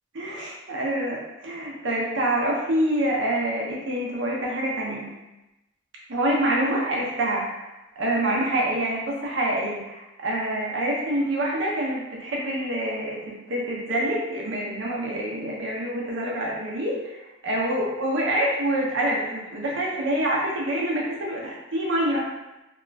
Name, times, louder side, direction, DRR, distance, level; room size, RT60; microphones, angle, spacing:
voice 1, 0.1-5.1 6.1-7.4 8.0-22.3, right 1 dB, 85° right, -4 dB, 0.7 m, -26 dB
2.8 x 2.4 x 2.3 m, 0.98 s
head